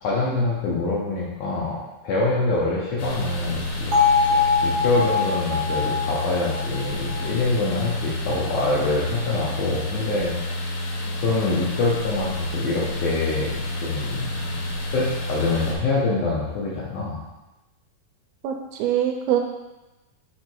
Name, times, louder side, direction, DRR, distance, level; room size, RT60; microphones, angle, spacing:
voice 1, 0.0-3.9 4.3-10.3 11.2-17.2, left 3 dB, 70° left, -6 dB, 2.0 m, -25 dB
sound 1, 3.0-15.8, left 1 dB, 85° left, 3.0 m, -29 dB
Bell, 3.9-8.0, left 5 dB, 45° right, 1.3 m, -23 dB
voice 2, 18.4-19.4, right 10 dB, 80° right, 3 dB, 2.3 m, -24 dB
5.5 x 4.5 x 4.5 m, 1.0 s
omnidirectional pair, 4.6 m